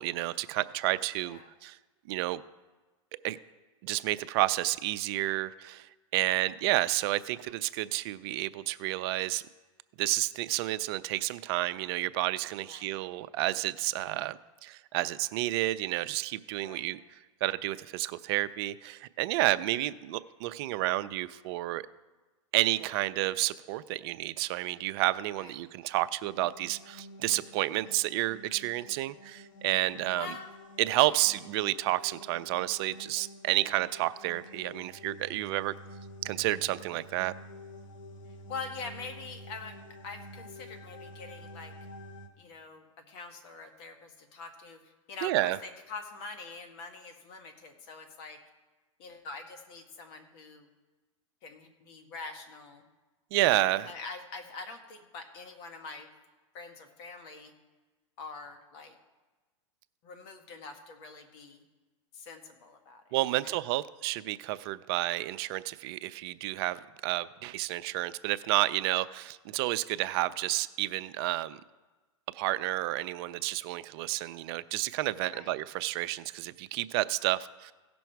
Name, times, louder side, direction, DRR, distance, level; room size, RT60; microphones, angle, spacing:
voice 1, 0.0-1.8 2.1-2.4 3.2-3.4 3.8-5.9 6.1-9.4 10.0-17.0 17.4-21.9 22.5-30.3 30.8-35.7 36.2-37.3 45.2-45.6 53.3-53.9 63.1-71.6 72.3-77.7, right 16 dB, 50° right, 14 dB, 0.5 m, -30 dB
voice 2, 1.2-1.5 6.2-6.4 12.6-13.0 14.0-14.3 16.6-16.9 25.3-25.6 30.1-30.5 38.5-39.8 40.0-41.7 42.4-48.4 49.0-50.7 51.4-52.8 53.8-56.1 56.5-57.5 58.2-59.0 60.0-61.6 62.1-63.6 75.3-75.5, left 4 dB, 55° left, 5 dB, 1.7 m, -44 dB
sound 1, 26.2-42.3, left 1 dB, 80° left, 1.3 m, -49 dB
16.5 x 6.1 x 4.6 m, 1.2 s
hypercardioid pair, 125°, 16 cm